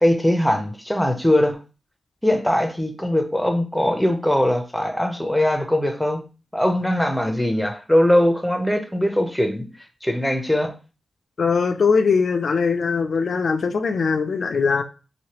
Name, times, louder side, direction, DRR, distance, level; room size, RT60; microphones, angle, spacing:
voice 1, 0.0-1.6 2.2-6.2 6.5-9.7 10.0-10.7, left 1 dB, 5° left, 5 dB, 0.6 m, -21 dB
voice 2, 11.4-14.8, left 5 dB, 70° left, 7 dB, 0.4 m, -21 dB
3.2 x 2.6 x 2.9 m, 0.34 s
wide cardioid pair, 100°, 0 cm